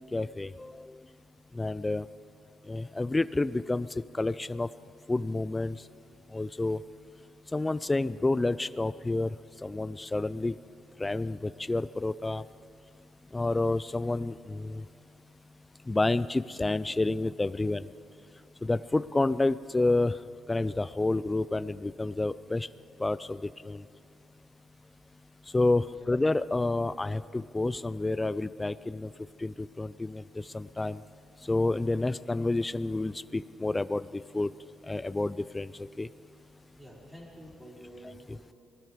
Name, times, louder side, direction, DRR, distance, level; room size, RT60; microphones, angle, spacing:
voice 1, 0.1-1.0 1.5-2.1 2.7-3.9 4.1-4.7 5.1-5.8 6.3-6.8 7.5-9.4 9.6-10.6 11.0-12.4 13.3-14.8 15.9-17.9 18.6-20.2 20.5-22.7 23.0-23.9 25.5-29.1 29.4-31.0 31.4-34.5 34.8-36.1 38.0-38.4, left 2 dB, 15° left, 17 dB, 0.3 m, -29 dB
voice 2, 36.7-38.5, equal, 10° right, -4 dB, 4.4 m, -49 dB
19.5 x 12.0 x 4.7 m, 2.4 s
cardioid pair, 90°, 0 cm